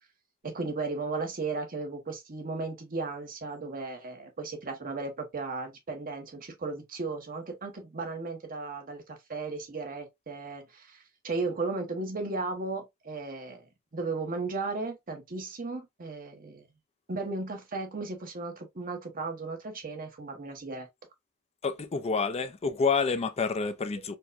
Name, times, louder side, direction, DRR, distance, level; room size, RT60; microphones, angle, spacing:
voice 1, 0.4-16.7 17.1-20.9, right 3 dB, 40° right, 0.9 m, -35 dB
voice 2, 21.6-24.2, left 4 dB, 30° left, 0.4 m, -28 dB
4.4 x 2.1 x 2.4 m
head